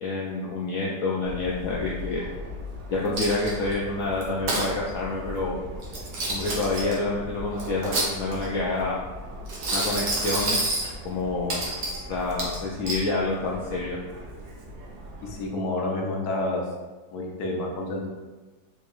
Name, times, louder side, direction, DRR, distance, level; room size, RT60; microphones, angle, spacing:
voice 1, 0.0-2.2 2.9-5.6 6.3-9.1 9.7-10.6 11.0-11.6 12.1-14.0, left 3 dB, 85° left, -5 dB, 0.7 m, -28 dB
Subway metro underground, 1.2-15.5, equal, 90° right, 1.4 m, -39 dB
Coin (dropping), 3.2-3.7 4.2-4.7 5.8-6.9 7.6-8.5 9.5-10.9 11.5-12.0 12.4-13.0, right 2 dB, 65° right, 1.3 m, -28 dB
voice 2, 15.2-16.6 17.1-18.1, left 2 dB, 65° left, -1 dB, 1.0 m, -29 dB
4.3 x 3.0 x 2.3 m, 1.3 s
omnidirectional pair, 2.0 m